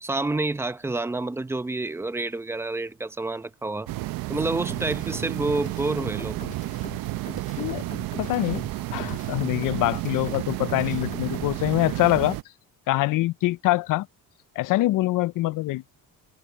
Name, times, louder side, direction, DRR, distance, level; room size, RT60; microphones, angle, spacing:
voice 1, 0.0-3.9 4.3-6.4, right 2 dB, 5° right, 0.7 m, -28 dB
sound 1, 3.9-12.4, right 17 dB, 75° right, 0.7 m, -31 dB
sound 2, 4.7-11.5, left 4 dB, 20° left, 1.7 m, -42 dB
voice 2, 7.6-7.9 8.2-8.6 8.9-12.4 12.9-14.1 14.6-15.9, left 18 dB, 65° left, 0.5 m, -24 dB
cardioid pair, 165°, 35 cm